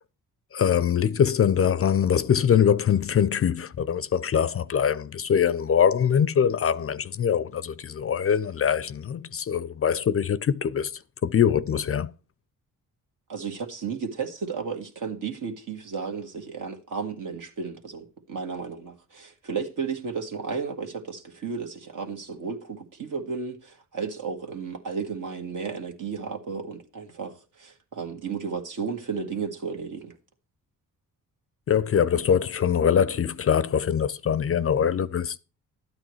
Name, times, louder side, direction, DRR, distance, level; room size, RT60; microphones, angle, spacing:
voice 1, 0.5-10.9 11.2-12.1 31.7-35.4, left 8 dB, 40° left, 0.5 m, -23 dB
voice 2, 13.3-30.2, right 5 dB, 60° right, 1.8 m, -33 dB
12.0 x 8.8 x 3.1 m
cardioid pair, 65°, 35 cm